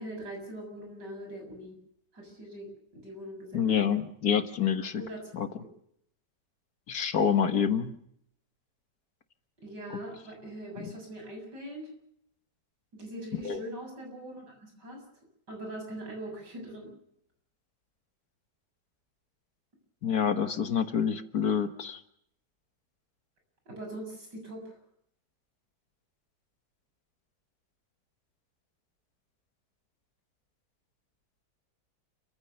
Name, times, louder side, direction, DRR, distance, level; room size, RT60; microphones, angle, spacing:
voice 1, 0.0-1.8 2.1-3.8 5.0-5.7 9.6-11.9 12.9-15.1 15.5-16.9 23.7-24.8, right 1 dB, 75° right, 2 dB, 7.8 m, -42 dB
voice 2, 3.5-5.0 5.3-5.5 6.9-7.9 13.4-13.6 20.0-22.0, left 7 dB, 60° left, 9 dB, 1.9 m, -27 dB
30.0 x 15.5 x 6.6 m, 0.69 s
omnidirectional pair, 1.9 m